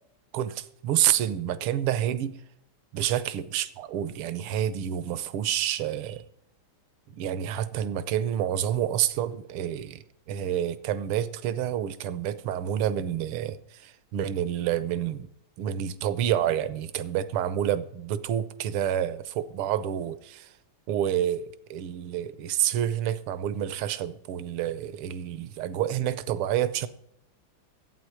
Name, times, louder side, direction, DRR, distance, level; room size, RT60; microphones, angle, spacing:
voice 1, 0.3-2.4 2.9-6.2 7.1-15.3 15.6-20.5 20.9-26.9, right 10 dB, 80° right, 1.6 m, -28 dB
12.0 x 8.6 x 4.8 m
omnidirectional pair, 2.4 m